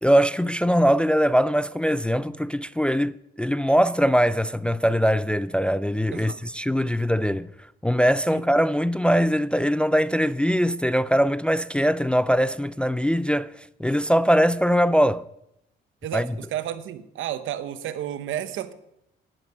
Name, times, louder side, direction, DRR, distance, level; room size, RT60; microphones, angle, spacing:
voice 1, 0.0-7.5 7.8-13.5 13.8-15.3 16.1-16.3, equal, 5° left, 0.4 m, -21 dB
voice 2, 16.0-18.7, right 11 dB, 80° right, 1.0 m, -32 dB
11.5 x 10.5 x 5.1 m
cardioid pair, 90°, 20 cm